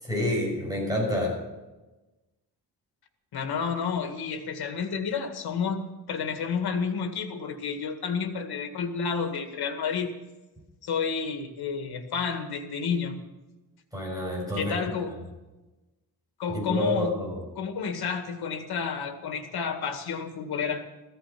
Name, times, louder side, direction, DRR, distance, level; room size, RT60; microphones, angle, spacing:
voice 1, 0.0-1.3 13.9-14.7 16.5-17.4, left 1 dB, 10° right, -3 dB, 6.6 m, -28 dB
voice 2, 3.3-10.1 10.8-13.2 14.5-15.1 16.4-17.1 17.6-20.8, left 6 dB, 85° left, 6 dB, 2.0 m, -30 dB
15.5 x 14.5 x 5.9 m, 1.1 s
wide cardioid pair, 175°, 37 cm